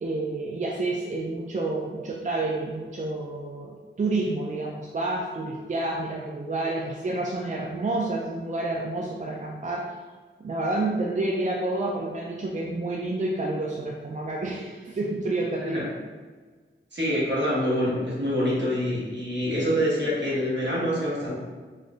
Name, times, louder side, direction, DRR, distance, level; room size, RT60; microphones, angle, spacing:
voice 1, 0.0-9.9 10.4-15.9, right 2 dB, 40° right, -2 dB, 0.4 m, -29 dB
voice 2, 16.9-21.4, equal, 60° right, -7 dB, 1.3 m, -26 dB
4.2 x 2.6 x 2.4 m, 1.4 s
wide cardioid pair, 90°, 20 cm